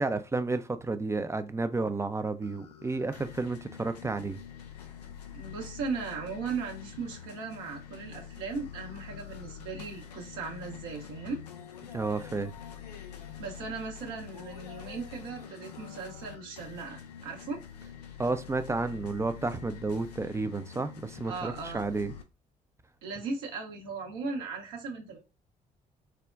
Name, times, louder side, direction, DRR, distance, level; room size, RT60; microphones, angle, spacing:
voice 1, 0.0-4.4 11.9-12.5 18.2-22.1, right 3 dB, 15° right, 0.4 m, -31 dB
sound 1, 2.4-22.2, left 8 dB, 90° left, 0.4 m, -46 dB
voice 2, 5.3-11.4 13.4-17.6 21.2-21.9 23.0-25.2, right 4 dB, 75° right, 0.8 m, -37 dB
3.4 x 2.1 x 2.3 m
hypercardioid pair, 45°, 20 cm